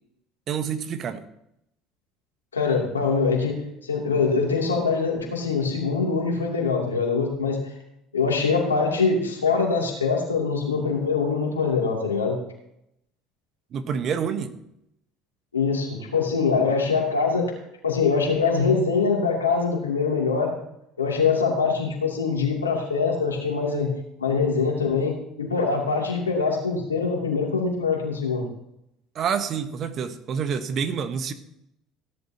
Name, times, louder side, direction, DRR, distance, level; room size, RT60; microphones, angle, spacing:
voice 1, 0.5-1.2 13.7-14.6 29.1-31.3, right 7 dB, 45° right, 9 dB, 1.2 m, -28 dB
voice 2, 2.5-7.7 8.1-12.4 15.5-17.6 17.8-20.6 21.0-23.9 24.2-28.5, left 5 dB, 90° left, -1 dB, 2.7 m, -23 dB
17.0 x 10.5 x 2.9 m, 0.80 s
figure-of-eight pair, 60°, 0 cm